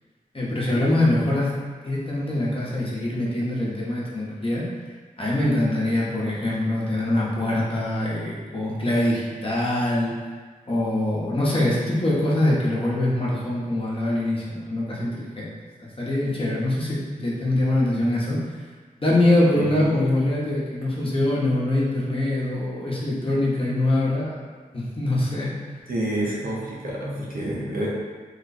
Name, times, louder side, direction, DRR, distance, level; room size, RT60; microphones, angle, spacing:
voice 1, 0.3-4.8 5.2-10.1 10.6-15.5 15.8-18.4 19.0-24.4 24.7-25.5, left 1 dB, 40° left, -6 dB, 1.0 m, -23 dB
voice 2, 25.9-27.9, right 1 dB, 75° right, -5 dB, 0.9 m, -28 dB
3.2 x 2.3 x 4.0 m, 1.5 s
cardioid pair, 55°, 15 cm